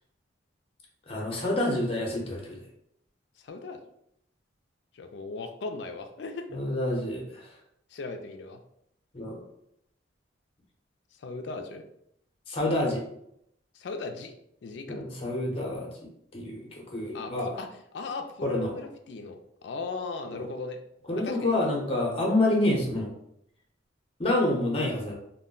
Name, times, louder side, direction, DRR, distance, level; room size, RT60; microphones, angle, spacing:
voice 1, 1.1-2.7 6.5-7.4 9.1-9.4 12.5-13.0 14.9-15.9 16.3-17.5 18.4-18.7 20.3-20.5 21.1-23.1 24.2-25.1, left 1 dB, 30° left, -1 dB, 0.7 m, -28 dB
voice 2, 3.4-3.8 4.9-6.5 7.9-8.6 11.2-11.8 13.7-14.3 14.6-15.0 17.1-20.8 21.1-21.6, left 3 dB, 65° left, 5 dB, 0.3 m, -38 dB
2.2 x 2.1 x 3.6 m, 0.75 s
head